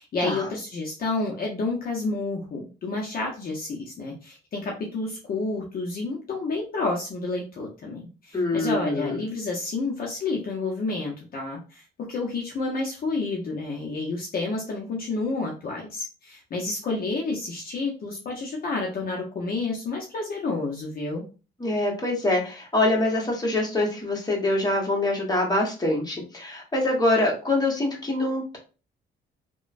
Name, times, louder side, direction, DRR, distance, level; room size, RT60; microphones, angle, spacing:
voice 1, 0.0-21.2, left 3 dB, 50° left, -2 dB, 0.7 m, -30 dB
voice 2, 8.3-9.2 21.6-28.6, left 2 dB, 20° left, -1 dB, 1.1 m, -24 dB
3.0 x 2.2 x 2.4 m, 0.34 s
cardioid pair, 90°, 20 cm